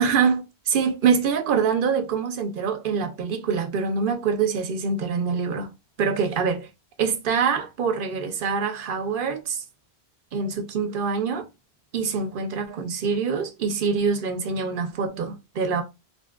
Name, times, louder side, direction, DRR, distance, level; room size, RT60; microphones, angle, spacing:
voice 1, 0.0-5.7 6.0-6.7 7.0-9.6 10.3-11.5 11.9-15.8, right 6 dB, 60° right, 0.6 m, -25 dB
3.4 x 2.5 x 2.2 m
omnidirectional pair, 1.1 m